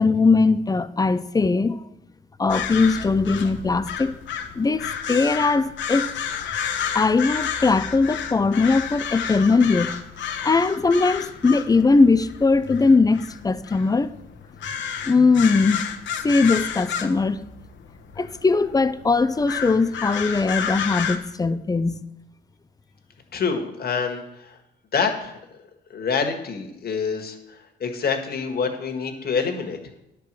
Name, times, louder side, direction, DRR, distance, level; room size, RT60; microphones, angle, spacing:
voice 1, 0.0-1.8 2.4-4.2 4.6-6.1 6.9-9.9 10.4-14.1 15.1-15.9 16.2-17.4 18.2-22.1, left 4 dB, 20° left, 0.5 m, -20 dB
sound 1, 2.5-21.2, left 8 dB, 70° left, 1.1 m, -31 dB
voice 2, 23.3-24.6 24.9-25.4 25.9-29.8, left 5 dB, 50° left, 1.7 m, -26 dB
10.5 x 4.7 x 7.5 m
cardioid pair, 90°, 20 cm